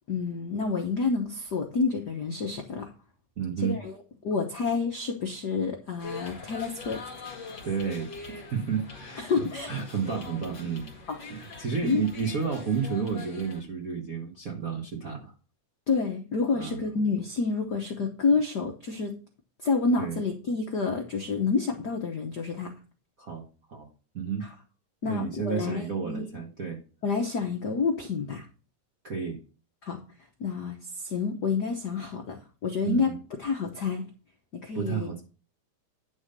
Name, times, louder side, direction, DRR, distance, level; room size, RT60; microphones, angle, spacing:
voice 1, 0.1-2.9 3.6-3.9 4.2-7.0 9.2-9.7 11.1-11.2 11.8-12.0 15.9-19.1 19.6-22.7 25.0-26.3 27.0-28.4 29.8-30.0 30.4-33.1 33.4-34.0 34.6-35.1, left 4 dB, 85° left, 2 dB, 0.9 m, -28 dB
voice 2, 3.4-3.8 7.6-10.9 11.3-15.3 16.5-16.8 20.0-20.2 23.2-23.9 24.1-24.4 25.0-26.8 29.0-29.4 32.8-33.1 34.7-35.2, right 6 dB, 65° right, 1 dB, 0.8 m, -31 dB
sound 1, 6.0-13.6, left 4 dB, 40° left, 2.3 m, -43 dB
10.5 x 3.7 x 6.7 m, 0.36 s
omnidirectional pair, 3.5 m